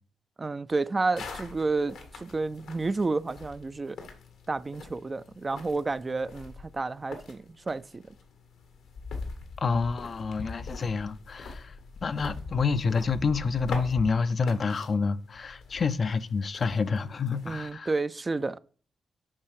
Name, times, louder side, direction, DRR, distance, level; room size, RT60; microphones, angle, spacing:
voice 1, 0.4-4.0 4.5-8.1 17.5-18.6, right 3 dB, 35° right, 0.4 m, -30 dB
sound 1, 1.1-17.7, left 4 dB, 85° left, 1.4 m, -43 dB
voice 2, 9.6-11.7 12.0-17.9, left 4 dB, 55° left, 0.5 m, -28 dB
7.4 x 4.6 x 4.8 m
supercardioid pair, 45°, 0 cm